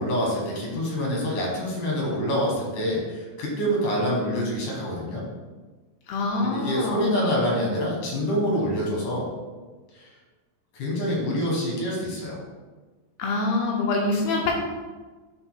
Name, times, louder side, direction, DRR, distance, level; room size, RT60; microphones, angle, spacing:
voice 1, 0.0-5.2 6.4-9.3 9.9-10.1 10.7-12.4, equal, 60° left, -3 dB, 2.5 m, -26 dB
voice 2, 6.1-7.1 13.2-14.6, left 2 dB, 75° left, -1 dB, 2.6 m, -25 dB
10.5 x 5.2 x 2.2 m, 1.3 s
omnidirectional pair, 5.0 m